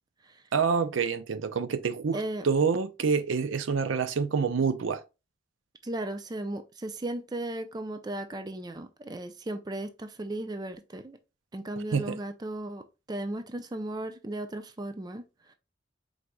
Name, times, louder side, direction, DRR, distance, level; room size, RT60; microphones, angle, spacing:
voice 1, 0.5-5.0 11.9-12.2, right 5 dB, 80° right, 0.5 m, -27 dB
voice 2, 2.1-2.4 5.8-11.2 11.5-15.5, right 1 dB, 20° right, 0.4 m, -36 dB
4.7 x 4.0 x 2.2 m
head